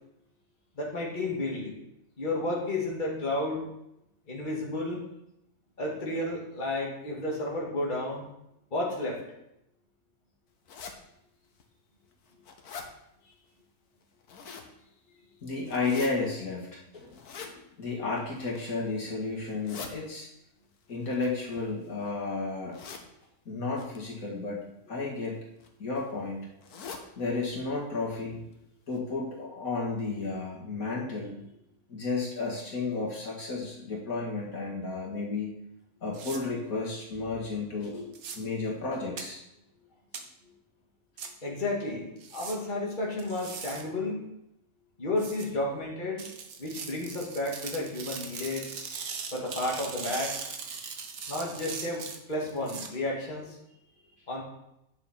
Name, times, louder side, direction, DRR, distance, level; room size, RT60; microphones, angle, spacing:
voice 1, 0.8-1.8 2.2-3.7 4.3-5.0 5.8-8.2 8.7-9.2 41.4-44.3 45.0-46.2 46.6-48.7 49.3-50.4 51.3-53.6 54.3-54.4, left 2 dB, 30° left, -3 dB, 2.1 m, -32 dB
sound 1, 10.7-11.0 11.6-11.7 12.1-12.9 14.0-14.7 15.7-16.1 17.1-17.5 18.3-18.7 19.4-19.9 21.0-22.0 22.7-23.1 23.8-24.0 25.0-25.3 25.6-25.7 26.0-26.1 26.6-27.1 27.5-27.6 27.9-28.0 28.5-28.6 28.9-29.0, left 6 dB, 80° left, 1.6 m, -43 dB
voice 2, 15.4-17.1 17.4-20.3 20.9-22.8 23.5-24.6 24.9-25.4 25.8-26.4 27.2-28.4 28.9-31.4 31.9-35.5 36.0-39.4, left 3 dB, 65° left, -3 dB, 2.5 m, -32 dB
sound 2, 36.1-36.4 38.1-38.4 39.2-39.3 40.1-40.2 41.2-41.3 42.2-42.6 43.2-43.8 45.2-45.5 46.2-52.9, right 5 dB, 70° right, 1.4 m, -39 dB
9.6 x 7.2 x 4.3 m, 0.83 s
omnidirectional pair, 1.6 m